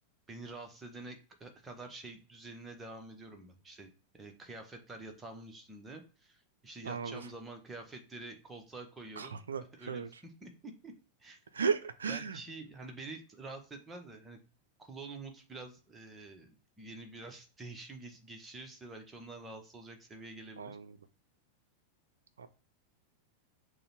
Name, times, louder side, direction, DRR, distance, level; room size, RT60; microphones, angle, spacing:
voice 1, 0.3-3.9 4.1-9.4 9.8-10.9 11.2-11.4 12.1-14.4 14.8-16.5 16.8-20.7, right 2 dB, 15° right, 0.8 m, -47 dB
voice 2, 6.8-7.2 9.2-10.1 11.5-12.4 20.6-20.9 22.4-22.5, right 6 dB, 70° right, 0.4 m, -35 dB
6.2 x 2.1 x 2.9 m
figure-of-eight pair, 90°, 0 cm